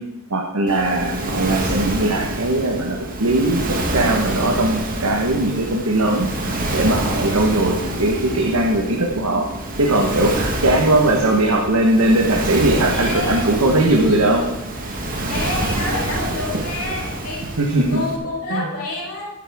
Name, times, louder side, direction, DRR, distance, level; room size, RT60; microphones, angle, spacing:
voice 1, 0.3-6.3 6.7-9.5 9.8-14.5 17.6-18.0 18.5-18.6, right 1 dB, 85° right, 0 dB, 1.3 m, -19 dB
Piano, 0.6-17.7, right 2 dB, 15° left, 4.5 m, -40 dB
Waves surf, 0.7-18.2, right 1 dB, 40° right, 1.6 m, -27 dB
voice 2, 11.2-11.5 12.9-13.5 15.1-19.3, left 2 dB, 90° left, -5 dB, 5.0 m, -29 dB
12.5 x 10.0 x 3.6 m, 0.92 s
head